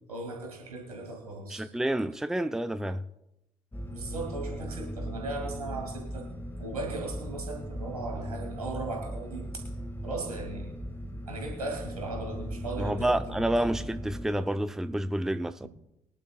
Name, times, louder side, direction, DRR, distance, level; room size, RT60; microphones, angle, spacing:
voice 1, 0.1-1.7 3.9-6.3 6.6-9.7 10.0-10.7 11.3-13.5, right 2 dB, 90° right, 2.4 m, -37 dB
voice 2, 1.5-3.0 12.8-15.7, right 1 dB, ahead, 0.6 m, -29 dB
sound 1, 3.7-14.3, equal, 15° left, 2.0 m, -38 dB
23.0 x 11.5 x 2.4 m
figure-of-eight pair, 45°, 19 cm